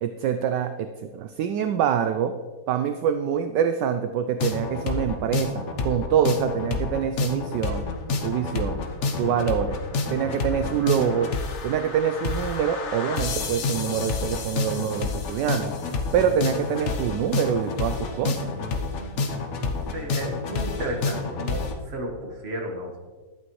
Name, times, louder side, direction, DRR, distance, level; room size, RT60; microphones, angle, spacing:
voice 1, 0.0-2.4 2.7-7.9 8.2-8.8 9.2-9.8 10.1-11.3 11.6-15.7 16.1-18.5, right 8 dB, 75° right, 8 dB, 1.1 m, -25 dB
sound 1, 4.4-21.7, left 3 dB, 50° left, 1.0 m, -29 dB
voice 2, 19.7-23.0, right 1 dB, 35° right, 1 dB, 1.7 m, -33 dB
12.0 x 8.6 x 3.2 m, 1.4 s
omnidirectional pair, 2.0 m